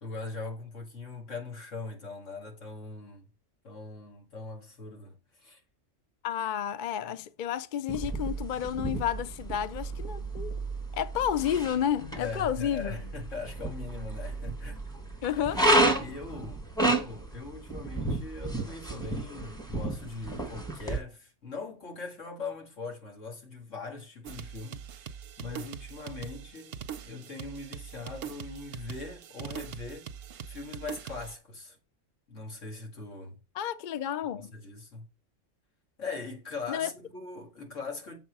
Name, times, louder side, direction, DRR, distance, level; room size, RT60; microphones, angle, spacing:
voice 1, 0.0-3.3 3.6-5.6 12.1-14.8 15.4-15.5 16.0-25.1 25.4-26.8 27.0-30.1 30.5-31.8 32.3-33.4 34.3-35.1 36.0-38.2, left 3 dB, 75° left, 2.6 m, -41 dB
voice 2, 6.2-10.6 10.9-13.0 15.2-15.8 33.5-34.5 36.7-36.9, left 9 dB, 55° left, 0.5 m, -31 dB
sound 1, 7.9-21.0, right 2 dB, 5° left, 1.1 m, -31 dB
sound 2, 24.2-31.3, right 8 dB, 60° right, 0.7 m, -42 dB
7.5 x 4.3 x 6.0 m
omnidirectional pair, 1.3 m